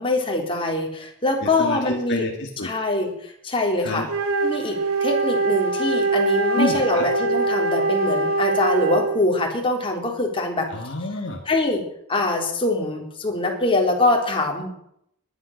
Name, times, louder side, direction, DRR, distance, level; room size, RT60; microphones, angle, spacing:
voice 1, 0.0-2.2 2.6-4.0 4.4-10.7 11.5-11.8 12.1-14.7, left 2 dB, 25° left, 1 dB, 3.6 m, -23 dB
voice 2, 1.4-2.7 3.8-4.1 6.5-7.1 10.7-11.4, left 2 dB, 55° left, 2 dB, 2.0 m, -28 dB
Wind instrument woodwind instrument, 4.0-9.3, right 3 dB, 70° right, 2.7 m, -23 dB
19.5 x 11.5 x 6.5 m, 0.73 s
head